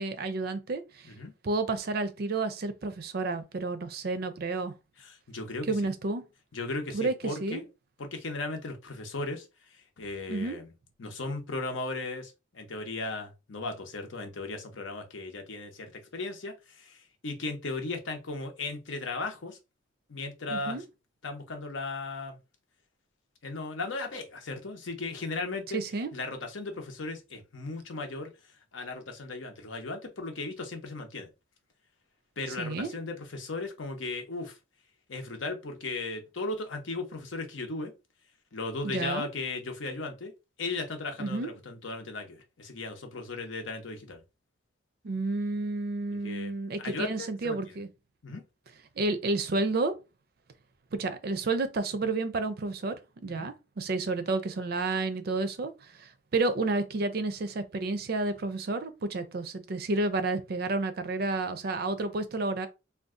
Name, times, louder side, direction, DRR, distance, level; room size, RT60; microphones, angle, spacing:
voice 1, 0.0-1.1 1.4-4.7 5.7-6.2 6.9-7.1 7.4-7.6 10.3-10.6 20.5-20.8 25.7-26.1 32.6-32.9 38.8-39.3 41.2-41.5 45.0-47.9 49.0-49.9 50.9-53.0 53.2-62.7, right 3 dB, 55° right, 0.4 m, -30 dB
voice 2, 5.0-5.7 6.5-7.6 8.0-10.7 11.0-19.6 20.1-20.8 21.2-22.4 23.4-25.8 26.1-28.3 28.7-31.3 32.4-34.6 35.1-37.9 38.5-40.3 40.6-44.2 46.2-46.5 46.8-47.6 48.2-48.4 53.4-53.5, left 3 dB, 80° left, 0.8 m, -36 dB
2.6 x 2.3 x 3.6 m
head